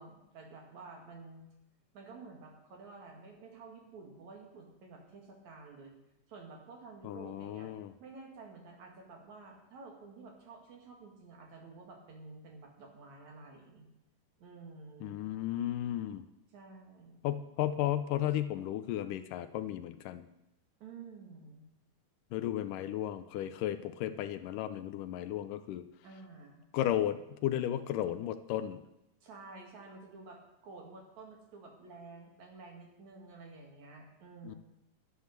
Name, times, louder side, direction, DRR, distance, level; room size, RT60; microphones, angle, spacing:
voice 1, 0.0-1.5 1.9-5.9 6.3-7.7 8.0-13.9 14.4-15.2 16.5-17.3 20.8-21.6 26.0-26.6 29.2-34.6, right 3 dB, 60° right, 1 dB, 3.3 m, -51 dB
voice 2, 7.0-7.9 15.0-16.2 17.2-20.2 22.3-25.8 26.7-28.8 34.4-34.6, left 12 dB, 80° left, 11 dB, 2.2 m, -34 dB
11.5 x 10.5 x 6.6 m, 0.89 s
omnidirectional pair, 3.9 m